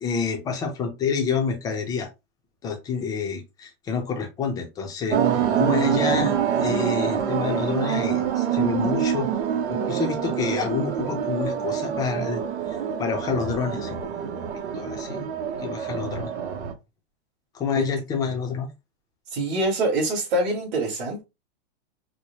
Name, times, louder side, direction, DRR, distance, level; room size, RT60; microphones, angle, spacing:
voice 1, 0.0-2.1 2.6-5.2 5.6-9.3 9.7-12.4 12.7-14.3 14.7-15.3 15.6-16.3 17.5-18.7, left 5 dB, 10° left, 0.5 m, -28 dB
sound 1, 5.1-16.7, right 8 dB, 90° right, 0.8 m, -26 dB
voice 2, 19.3-21.2, right 2 dB, 40° right, 2.0 m, -25 dB
4.7 x 2.1 x 2.8 m
supercardioid pair, 160°, 33 cm